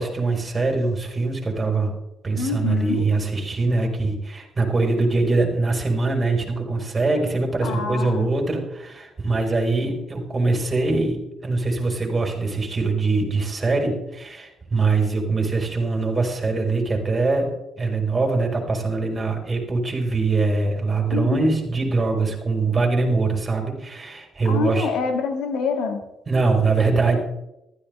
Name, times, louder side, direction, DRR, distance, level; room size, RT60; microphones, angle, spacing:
voice 1, 0.0-1.9 2.2-17.5 17.8-24.9 26.3-27.2, right 3 dB, 30° right, 1 dB, 4.6 m, -23 dB
voice 2, 2.4-3.1 7.6-8.3 21.1-21.5 24.5-26.0, left 5 dB, 80° left, 6 dB, 1.9 m, -26 dB
15.0 x 13.5 x 3.5 m, 0.87 s
cardioid pair, 90°, 0 cm